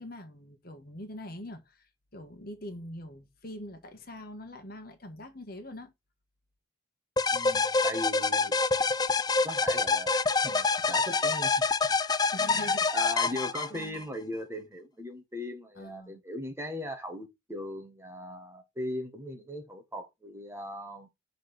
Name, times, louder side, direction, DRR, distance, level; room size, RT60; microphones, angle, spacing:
voice 1, 0.0-5.9 12.3-12.9 13.7-14.0 15.8-16.2, left 1 dB, 50° left, 1.4 m, -43 dB
sound 1, 7.2-14.0, left 4 dB, 20° left, 0.4 m, -26 dB
voice 2, 7.3-8.5 9.4-11.5 12.5-21.1, left 1 dB, 15° right, 1.7 m, -39 dB
6.5 x 4.2 x 5.0 m
head